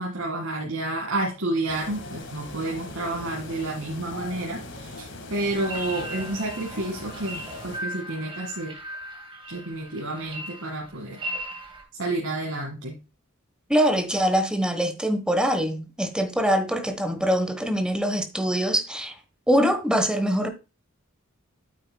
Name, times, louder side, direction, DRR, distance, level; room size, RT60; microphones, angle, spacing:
voice 1, 0.0-8.8 9.5-11.2 12.0-13.0, right 2 dB, 80° right, 2.1 m, -30 dB
sound 1, 1.7-7.8, left 2 dB, 60° left, 1.9 m, -40 dB
sound 2, 5.5-11.8, right 1 dB, 25° right, 2.1 m, -37 dB
voice 2, 13.7-19.2 19.5-20.5, equal, 5° right, 1.1 m, -23 dB
8.9 x 8.5 x 2.3 m
head